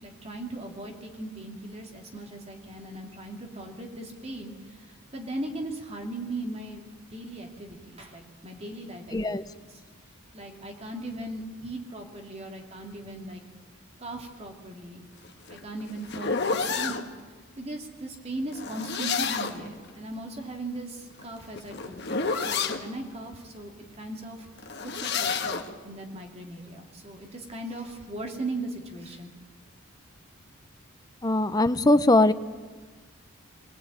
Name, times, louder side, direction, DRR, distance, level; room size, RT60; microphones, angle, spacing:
voice 1, 0.0-6.8 7.1-9.8 10.3-13.4 14.0-15.1 15.5-17.0 17.6-24.5 24.8-29.3, right 2 dB, 30° right, 2 dB, 2.8 m, -38 dB
voice 2, 9.1-9.4 31.2-32.3, left 2 dB, 20° left, 11 dB, 0.7 m, -21 dB
sound 1, 15.2-17.0 18.5-19.7 21.1-22.8 24.6-25.7, left 5 dB, 50° left, 1.4 m, -29 dB
23.0 x 17.5 x 8.9 m, 1.3 s
head